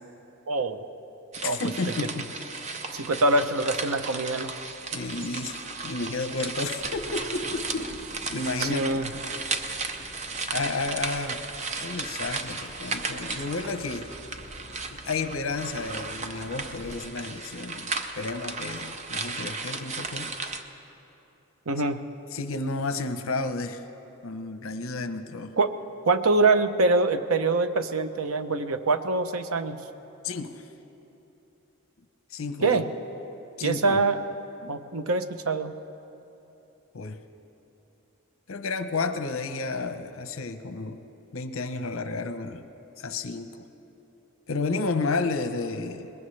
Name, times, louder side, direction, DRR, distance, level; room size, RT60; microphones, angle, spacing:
voice 1, 0.5-0.9 1.4-1.6 2.9-4.5 8.6-9.1 21.7-22.0 25.6-25.7 26.0-29.8 32.6-32.9 33.6-34.2 34.7-35.7, right 3 dB, 80° right, 9 dB, 0.7 m, -24 dB
sound 1, 1.3-20.6, right 4 dB, 30° right, 0.6 m, -35 dB
voice 2, 1.4-2.4 4.9-7.9 8.3-9.3 10.5-11.4 11.8-14.1 14.9-20.4 22.3-23.8 24.2-25.5 30.2-30.6 32.3-32.8 33.6-34.0 34.6-34.7 36.9-37.2 38.5-41.0 41.3-42.7 43.0-43.7 44.5-46.1, left 3 dB, 70° left, 9 dB, 0.8 m, -32 dB
Water tap faucet / Drip, 6.8-17.0, left 1 dB, 35° left, 1.3 m, -48 dB
22.0 x 20.5 x 3.3 m, 3.0 s
head